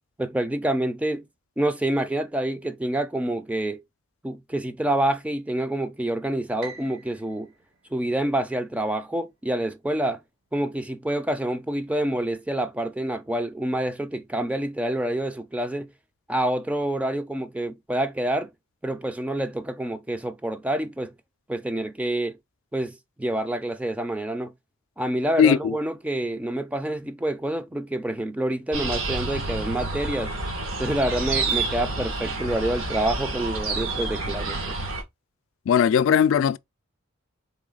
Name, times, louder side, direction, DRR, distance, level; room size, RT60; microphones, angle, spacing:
voice 1, 0.2-1.3 1.6-3.8 4.2-7.5 7.9-10.2 10.5-15.9 16.3-18.5 18.8-21.1 21.5-22.4 22.7-24.5 25.0-30.3 30.8-34.7, right 1 dB, 5° right, 0.3 m, -27 dB
Piano, 6.6-8.9, right 4 dB, 50° right, 1.1 m, -46 dB
voice 2, 25.4-25.8 35.7-36.6, left 7 dB, 70° left, 0.3 m, -19 dB
sound 1, 28.7-35.0, right 3 dB, 80° right, 1.7 m, -29 dB
4.1 x 3.4 x 3.8 m
head